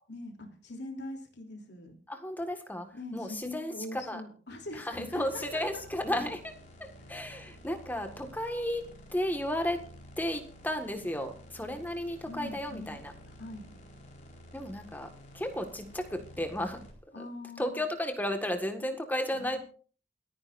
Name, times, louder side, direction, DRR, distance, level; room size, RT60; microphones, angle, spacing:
voice 1, 0.1-1.9 2.9-5.8 12.3-13.0 13.3-13.7 17.1-17.8 19.3-19.6, left 1 dB, 70° left, 2 dB, 3.2 m, -42 dB
voice 2, 2.1-2.9 3.1-4.2 4.7-6.5 6.8-9.8 10.2-13.1 14.5-15.1 15.3-16.8 17.2-17.3 17.6-19.6, left 1 dB, 10° left, 5 dB, 1.7 m, -34 dB
sound 1, 4.9-16.9, equal, 45° left, 4.4 m, -51 dB
28.5 x 10.0 x 2.6 m, 0.40 s
head